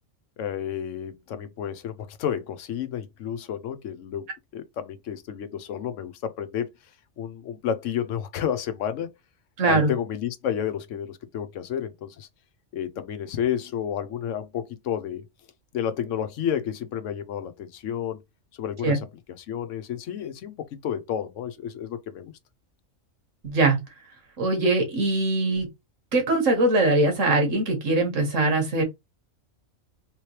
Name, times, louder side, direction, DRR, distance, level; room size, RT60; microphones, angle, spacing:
voice 1, 0.4-6.7 7.2-9.1 9.6-12.3 12.7-15.3 15.7-18.2 18.5-19.1 19.4-22.3, left 9 dB, 80° left, 1.0 m, -31 dB
voice 2, 9.6-9.9 18.8-19.0 23.4-23.8 24.4-25.7 26.1-28.8, right 2 dB, 80° right, 1.7 m, -22 dB
3.6 x 3.0 x 3.1 m
omnidirectional pair, 1.3 m